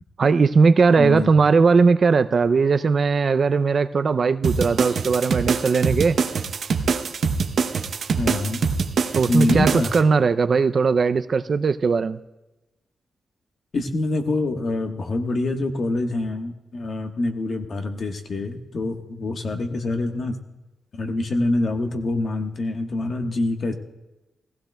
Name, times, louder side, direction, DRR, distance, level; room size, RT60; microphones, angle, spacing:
voice 1, 0.2-6.2 9.1-12.2, right 4 dB, 45° right, 11 dB, 0.4 m, -19 dB
voice 2, 1.0-1.3 8.2-8.7 9.3-9.9 13.7-20.4 20.9-23.7, left 2 dB, 55° left, 4 dB, 1.2 m, -25 dB
sound 1, 4.4-10.0, right 5 dB, 70° right, 0.8 m, -24 dB
18.0 x 16.0 x 2.2 m, 1.0 s
wide cardioid pair, 120°, 0 cm